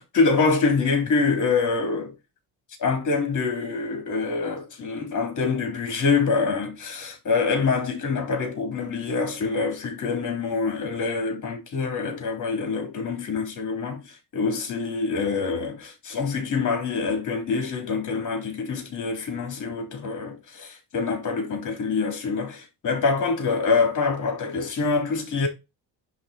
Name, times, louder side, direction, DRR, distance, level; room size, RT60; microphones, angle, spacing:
voice 1, 0.0-2.1 2.8-25.5, left 4 dB, 45° left, 3.3 m, -25 dB
10.0 x 3.4 x 4.3 m
cardioid pair, 160°, 43 cm